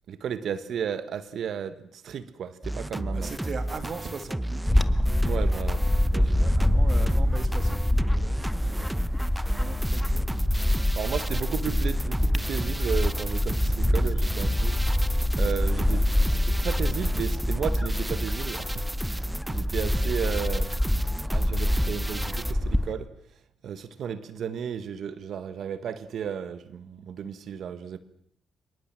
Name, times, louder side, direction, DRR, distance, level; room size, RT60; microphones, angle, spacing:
voice 1, 0.1-3.3 5.2-6.5 10.9-20.7 21.3-23.1 23.6-28.0, right 8 dB, 70° right, 1.6 m, -34 dB
sound 1, 2.6-22.5, right 1 dB, 10° right, 1.1 m, -33 dB
voice 2, 3.1-5.0 6.3-9.1 9.5-10.4 10.7-10.9 11.3-11.4, right 5 dB, 50° right, 2.9 m, -40 dB
Bird / Wind, 4.7-22.9, left 1 dB, 5° left, 2.0 m, -25 dB
26.0 x 22.5 x 7.6 m
supercardioid pair, 65°, 0 cm